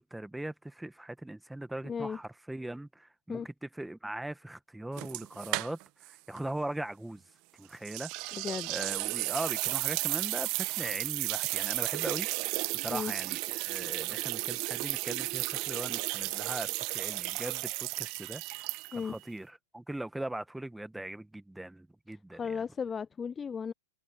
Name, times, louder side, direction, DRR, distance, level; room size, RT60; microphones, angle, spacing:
voice 1, 0.0-7.2 7.5-8.1 8.7-12.3 12.7-22.6, right 1 dB, 5° right, 1.8 m, -40 dB
voice 2, 1.8-2.2 3.3-3.5 8.3-8.7 12.9-13.1 18.9-19.2 22.3-23.7, left 6 dB, 20° left, 0.4 m, -35 dB
sound 1, 5.0-6.1 6.4-6.5 7.8-19.1, right 25 dB, 45° right, 1.3 m, -34 dB
hypercardioid pair, 105°, 0 cm